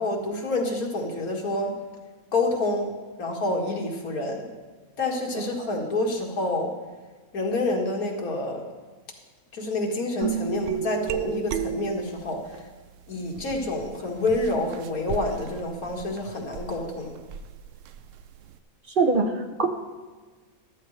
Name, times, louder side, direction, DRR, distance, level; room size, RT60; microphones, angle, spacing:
voice 1, 0.0-1.7 2.3-2.9 3.2-4.5 5.0-6.7 7.3-8.6 9.5-12.7 13.1-17.2, left 2 dB, 85° left, 0 dB, 2.2 m, -28 dB
voice 2, 5.3-5.7 19.0-19.7, right 3 dB, 40° right, 4 dB, 1.0 m, -24 dB
sound 1, 10.2-12.6 13.3-18.5, right 9 dB, 70° right, 0.9 m, -34 dB
13.5 x 12.5 x 3.3 m, 1.4 s
omnidirectional pair, 1.5 m